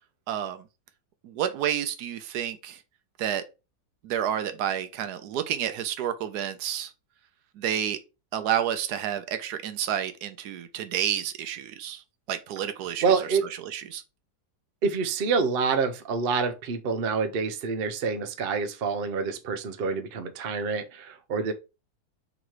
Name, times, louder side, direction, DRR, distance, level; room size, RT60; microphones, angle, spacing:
voice 1, 0.3-0.6 1.2-2.8 3.2-3.4 4.0-6.9 7.6-8.0 8.3-12.0 12.3-13.3 13.6-14.0, right 10 dB, 70° right, 1.1 m, -30 dB
voice 2, 13.0-13.4 14.8-21.5, right 5 dB, 85° right, 0.5 m, -27 dB
4.0 x 3.0 x 4.5 m
omnidirectional pair, 2.0 m